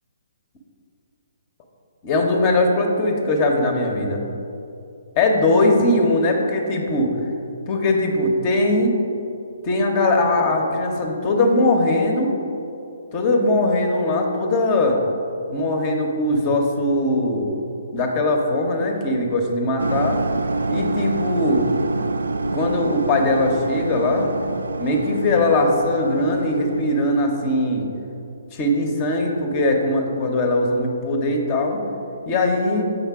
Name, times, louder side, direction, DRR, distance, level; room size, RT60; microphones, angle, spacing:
voice 1, 2.0-4.2 5.2-7.1 7.7-8.9 9.6-12.3 13.1-15.0 15.5-17.5 17.9-20.2 20.7-21.7 22.5-24.3 24.8-27.9 28.5-31.8 32.3-32.8, left 2 dB, 30° left, 2 dB, 0.8 m, -20 dB
sound 1, 19.8-27.4, right 3 dB, 75° right, 0.3 m, -27 dB
7.3 x 5.3 x 3.6 m, 2.7 s
figure-of-eight pair, 135°, 0 cm